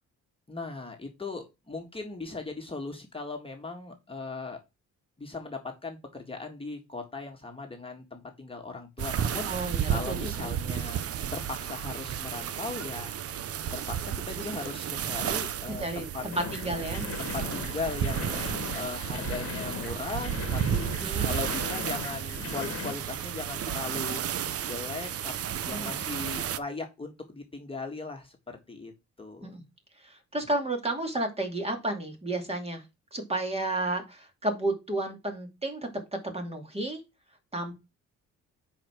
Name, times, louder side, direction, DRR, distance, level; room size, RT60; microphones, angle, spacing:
voice 1, 0.5-4.6 5.2-11.0 11.3-13.2 13.7-16.3 16.6-16.8 17.2-20.9 21.2-25.4 25.6-28.9 29.2-29.5, left 3 dB, 20° left, 2 dB, 1.7 m, -38 dB
sound 1, 9.0-26.6, right 9 dB, 50° right, 0.7 m, -32 dB
voice 2, 9.5-10.5 15.7-17.1 21.0-21.3 25.7-26.0 29.4-29.6 30.0-32.8 33.1-37.0 37.5-37.8, right 2 dB, 20° right, 4 dB, 2.6 m, -32 dB
sound 2, 16.3-22.9, left 7 dB, 50° left, 1.5 m, -39 dB
7.6 x 5.0 x 4.6 m, 0.24 s
cardioid pair, 90°, 30 cm